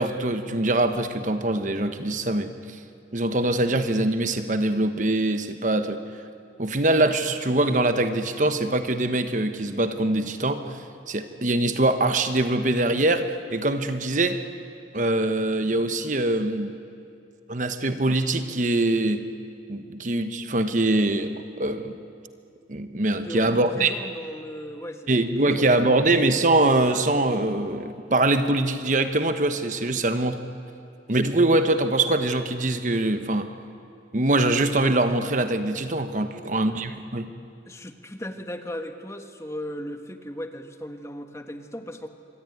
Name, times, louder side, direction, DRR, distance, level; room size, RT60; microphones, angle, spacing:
voice 1, 0.0-2.5 3.1-6.0 6.6-10.6 11.1-14.4 14.9-16.7 17.5-19.2 19.7-21.3 21.6-22.0 22.7-23.9 25.1-30.4 31.1-33.5 34.1-37.3, right 2 dB, 45° right, 8 dB, 1.1 m, -23 dB
voice 2, 23.2-26.2 36.3-36.9 37.6-42.1, equal, 15° left, 6 dB, 1.4 m, -37 dB
25.5 x 23.5 x 9.7 m, 2.5 s
head